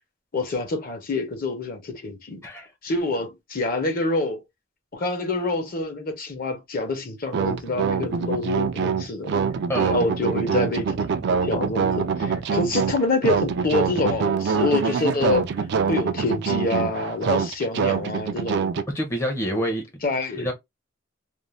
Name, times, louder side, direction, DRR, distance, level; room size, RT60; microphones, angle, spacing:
voice 1, 0.3-2.4 2.8-4.4 4.9-9.3 9.9-15.5 15.9-18.6 20.0-20.5, left 2 dB, 50° left, 0.7 m, -26 dB
sound 1, 7.3-18.8, right 6 dB, 60° right, 0.3 m, -25 dB
voice 2, 18.9-19.8 20.4-20.5, equal, 15° left, 0.5 m, -26 dB
2.5 x 2.0 x 3.0 m
head